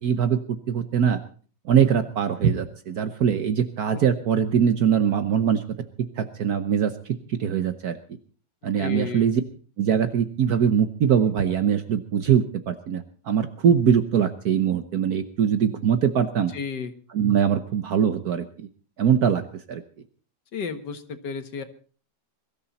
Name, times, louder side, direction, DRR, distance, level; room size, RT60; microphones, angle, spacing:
voice 1, 0.0-1.2 1.6-5.6 6.0-8.0 8.6-9.4 9.8-16.5 17.1-18.7 19.0-19.4 19.7-19.8, right 8 dB, 65° right, 10 dB, 1.4 m, -22 dB
voice 2, 8.8-9.3 16.5-16.9 20.5-21.6, left 5 dB, 75° left, 8 dB, 2.1 m, -32 dB
22.5 x 13.0 x 4.1 m, 0.40 s
omnidirectional pair, 1.9 m